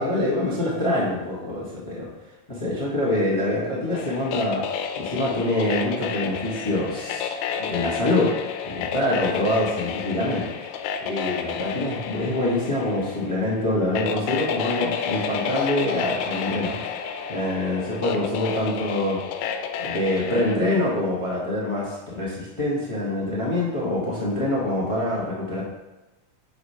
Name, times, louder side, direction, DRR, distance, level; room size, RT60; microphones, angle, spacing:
voice 1, 0.0-2.1 2.5-4.6 5.0-7.3 7.6-8.3 8.6-16.9 17.3-19.2 19.8-25.6, left 1 dB, 50° left, -6 dB, 0.3 m, -25 dB
sound 1, 3.9-20.6, left 7 dB, 90° left, 2.0 m, -31 dB
5.0 x 4.9 x 5.5 m, 1.0 s
omnidirectional pair, 3.3 m